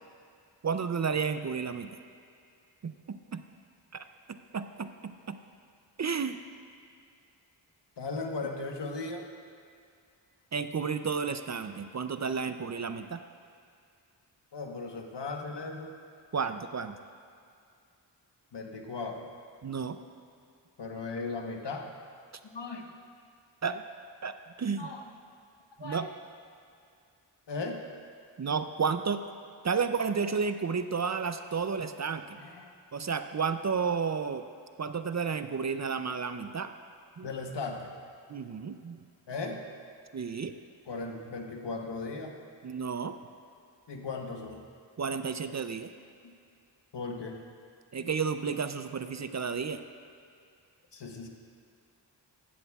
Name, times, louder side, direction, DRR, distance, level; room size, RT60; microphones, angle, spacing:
voice 1, 0.6-1.9 2.8-3.4 3.9-5.4 6.0-6.4 10.5-13.2 16.3-17.0 19.6-20.0 23.6-23.8 24.2-24.9 25.8-26.1 28.4-29.2 29.6-32.4 32.9-34.4 34.8-36.7 37.2-37.3 38.3-39.0 40.1-40.6 42.6-43.2 45.0-45.9 47.9-49.8, right 5 dB, 40° right, 9 dB, 0.5 m, -32 dB
voice 2, 8.0-9.2 14.5-15.9 18.5-19.3 20.8-21.9 22.5-22.9 24.8-25.0 25.8-26.0 27.5-27.8 32.3-32.7 37.2-37.9 39.3-39.6 40.9-42.4 43.9-44.6 46.9-47.4 50.9-51.3, left 3 dB, 65° left, 2 dB, 1.2 m, -37 dB
15.5 x 11.0 x 2.4 m, 2.3 s
cardioid pair, 50°, 44 cm